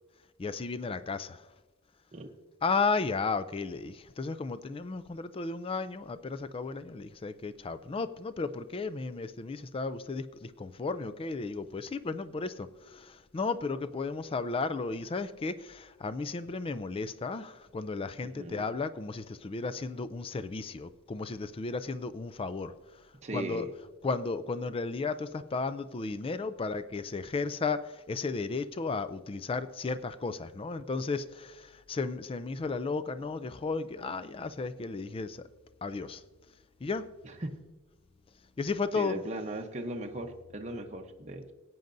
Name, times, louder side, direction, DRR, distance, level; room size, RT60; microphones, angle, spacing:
voice 1, 0.4-1.5 2.6-23.0 23.3-23.7 24.0-35.5 35.8-36.2 36.8-37.1 38.6-39.2, left 4 dB, 25° left, 0.4 m, -34 dB
voice 2, 18.2-18.6 23.1-23.7 37.2-37.5 38.9-41.5, right 2 dB, 30° right, 0.8 m, -38 dB
19.5 x 9.3 x 2.6 m
head